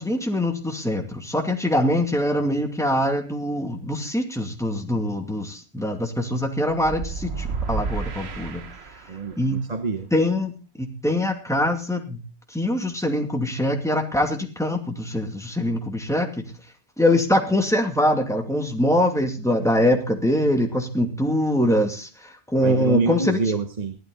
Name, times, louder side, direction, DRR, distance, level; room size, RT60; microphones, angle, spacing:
voice 1, 0.0-8.6 9.4-9.6 10.1-10.5 10.8-12.2 12.5-16.3 17.0-23.4, left 1 dB, 5° left, 3 dB, 2.4 m, -23 dB
sound 1, 6.8-9.3, right 5 dB, 70° right, 1.4 m, -31 dB
voice 2, 9.1-10.1 22.6-23.9, right 3 dB, 40° right, 9 dB, 1.0 m, -26 dB
16.0 x 12.5 x 3.9 m, 0.31 s
omnidirectional pair, 1.1 m